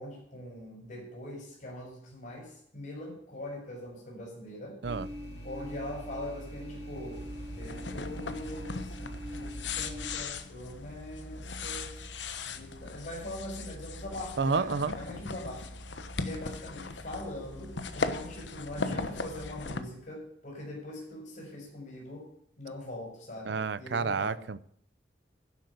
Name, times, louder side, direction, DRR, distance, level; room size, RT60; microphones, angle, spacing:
voice 1, 0.0-4.8 5.4-7.2 7.5-12.1 12.4-15.7 16.2-22.3 22.6-24.4, left 1 dB, 50° left, -1 dB, 5.2 m, -42 dB
sound 1, 4.8-10.2, equal, 65° left, 4.3 m, -42 dB
sound 2, 7.1-19.8, left 3 dB, 85° left, 1.1 m, -38 dB
voice 2, 14.4-14.9 23.5-24.6, right 4 dB, 70° right, 16 dB, 0.5 m, -29 dB
11.5 x 8.0 x 8.0 m, 0.68 s
head